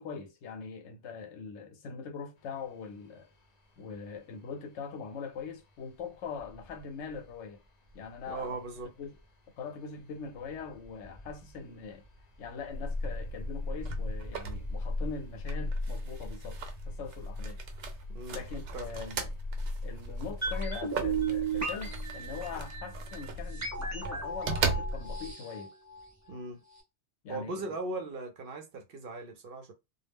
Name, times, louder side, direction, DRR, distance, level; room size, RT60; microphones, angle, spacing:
voice 1, 0.0-3.3 3.8-7.6 7.9-8.6 9.0-9.1 9.6-12.0 12.4-16.6 16.9-17.6 18.3-19.4 19.8-25.7 27.2-27.7, left 5 dB, 80° left, 0.9 m, -42 dB
sound 1, 2.4-20.9, equal, 45° left, 0.6 m, -52 dB
voice 2, 8.3-8.9 18.1-18.4 18.7-18.9 26.3-26.6 27.3-29.7, right 2 dB, 60° right, 0.7 m, -38 dB
sound 2, 12.7-25.3, right 1 dB, 85° right, 0.9 m, -36 dB
sound 3, 20.4-26.4 26.7-26.8, right 5 dB, 20° right, 0.5 m, -36 dB
2.3 x 2.0 x 3.3 m
omnidirectional pair, 1.2 m